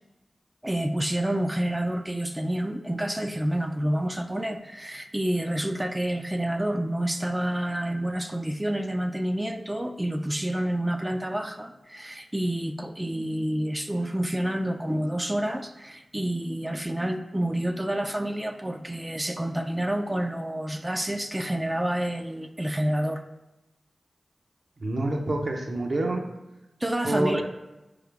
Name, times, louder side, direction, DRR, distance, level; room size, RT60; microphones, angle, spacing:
voice 1, 0.6-23.2 26.8-27.4, right 1 dB, 15° right, 6 dB, 0.3 m, -28 dB
voice 2, 24.8-26.2 27.0-27.4, right 2 dB, 60° right, 2 dB, 0.7 m, -27 dB
4.0 x 3.6 x 3.4 m, 1.0 s
cardioid pair, 50°, 0 cm